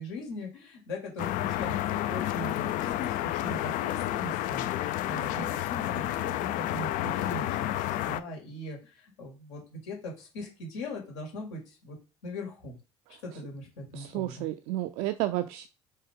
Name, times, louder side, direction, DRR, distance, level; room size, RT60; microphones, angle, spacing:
voice 1, 0.0-12.0 12.2-12.8 13.2-14.5, left 1 dB, 80° left, 2.0 m, -40 dB
sound 1, 1.2-8.2, left 14 dB, 65° left, 0.4 m, -30 dB
voice 2, 13.9-15.7, right 15 dB, 70° right, 0.4 m, -31 dB
4.5 x 3.3 x 3.5 m
hypercardioid pair, 60°, 15 cm